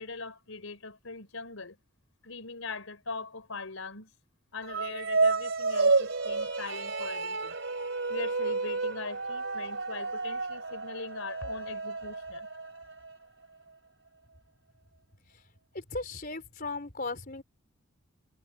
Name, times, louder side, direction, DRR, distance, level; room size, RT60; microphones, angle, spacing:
voice 1, 0.0-1.8 2.2-4.1 4.5-7.6 8.1-12.5, left 4 dB, 85° left, 4.1 m, -41 dB
sound 1, 4.6-13.1, right 3 dB, 60° right, 3.5 m, -30 dB
voice 2, 15.7-17.4, left 3 dB, 45° left, 4.3 m, -37 dB
head